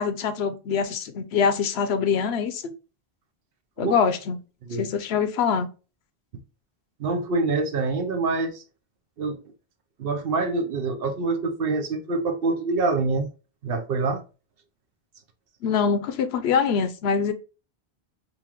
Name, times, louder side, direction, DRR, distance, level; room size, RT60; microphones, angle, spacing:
voice 1, 0.0-2.7 3.8-4.4 4.8-5.7 15.6-17.3, left 6 dB, 80° left, 0.9 m, -24 dB
voice 2, 7.0-8.6 9.2-9.4 10.0-13.3 13.6-14.2, right 3 dB, 65° right, 0.9 m, -25 dB
5.4 x 2.4 x 2.9 m
omnidirectional pair, 1.1 m